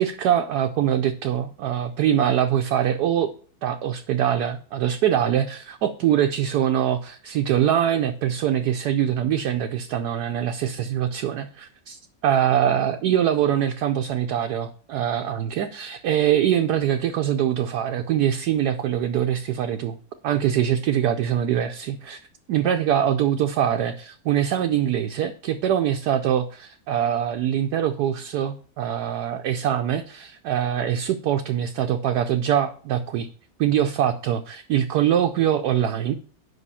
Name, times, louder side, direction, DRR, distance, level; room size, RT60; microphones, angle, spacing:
voice 1, 0.0-3.3 3.6-20.0 20.2-22.2 22.5-33.3 33.6-36.2, right 10 dB, 70° right, 5 dB, 1.1 m, -23 dB
8.2 x 5.6 x 5.6 m, 0.43 s
omnidirectional pair, 1.9 m